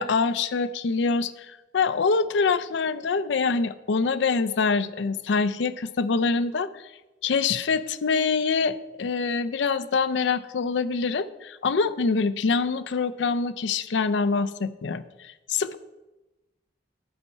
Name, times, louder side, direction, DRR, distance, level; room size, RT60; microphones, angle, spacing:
voice 1, 0.0-1.3 1.7-6.8 7.2-15.8, left 4 dB, 70° left, 14 dB, 0.4 m, -25 dB
11.0 x 4.2 x 5.5 m, 1.0 s
head